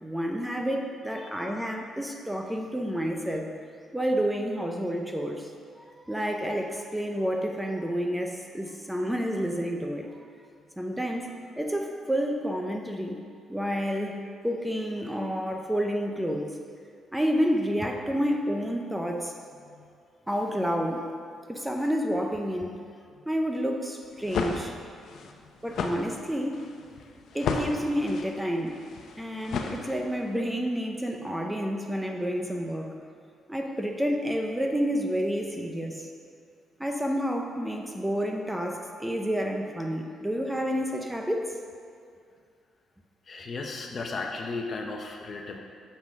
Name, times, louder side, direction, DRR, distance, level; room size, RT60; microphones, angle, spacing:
voice 1, 0.0-3.5 3.9-10.0 10.8-13.2 13.5-14.2 14.4-16.5 17.1-19.3 20.3-21.1 21.5-22.8 23.3-24.7 25.6-26.7 27.3-28.8 29.2-32.9 33.5-36.1 36.8-41.6, equal, 5° right, 2 dB, 0.7 m, -29 dB
sound 1, 24.0-30.3, left 5 dB, 70° left, 0.7 m, -34 dB
voice 2, 25.1-25.5 43.2-45.6, left 3 dB, 45° left, 2 dB, 0.9 m, -36 dB
7.2 x 5.9 x 5.2 m, 2.3 s
cardioid pair, 90°, 0 cm